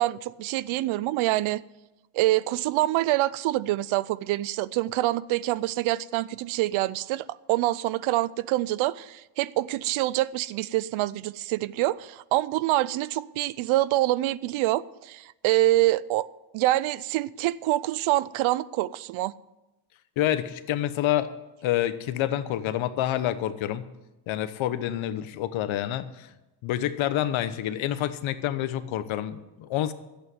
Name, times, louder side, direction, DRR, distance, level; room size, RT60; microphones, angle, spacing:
voice 1, 0.0-1.6 2.1-16.3 16.5-19.3, right 16 dB, 80° right, 0.6 m, -26 dB
voice 2, 20.2-21.3 21.6-23.9 24.3-26.3 26.6-29.9, left 12 dB, 75° left, 1.1 m, -28 dB
11.0 x 8.4 x 9.4 m
cardioid pair, 105°, 48 cm